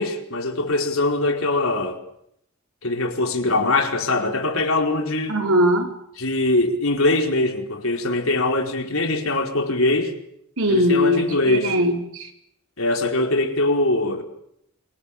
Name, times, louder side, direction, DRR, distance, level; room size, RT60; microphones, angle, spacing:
voice 1, 0.0-2.0 2.8-5.4 6.2-10.1 10.7-11.7 12.8-14.2, left 2 dB, 70° left, 3 dB, 4.8 m, -22 dB
voice 2, 5.3-5.9 10.6-12.3, equal, 75° right, 4 dB, 4.7 m, -20 dB
27.5 x 24.5 x 8.7 m, 0.75 s
head